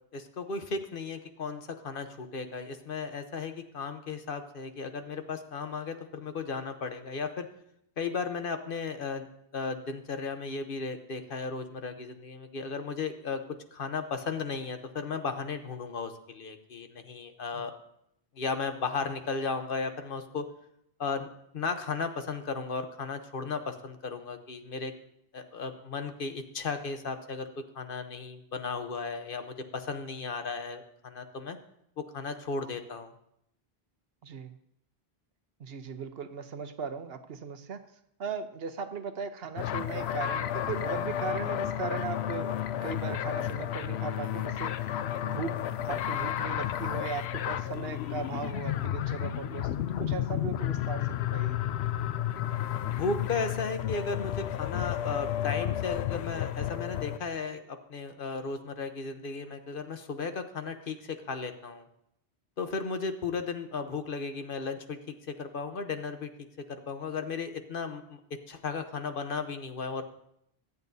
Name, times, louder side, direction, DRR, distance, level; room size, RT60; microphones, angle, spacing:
voice 1, 0.1-7.5 8.0-9.3 9.5-13.4 13.7-17.7 18.3-20.4 21.0-21.3 21.5-24.9 25.3-27.5 27.7-31.6 32.0-33.1 52.9-61.9 62.6-65.0 65.3-66.3 66.7-68.2 68.5-70.0, left 4 dB, 60° left, 8 dB, 1.1 m, -35 dB
voice 2, 34.2-34.6 35.6-37.8 38.2-44.9 45.2-45.5 45.8-51.6, right 6 dB, 70° right, 9 dB, 1.0 m, -38 dB
sound 1, 39.6-57.2, left 11 dB, 80° left, 0.8 m, -32 dB
23.5 x 8.1 x 2.7 m, 0.76 s
omnidirectional pair, 1.1 m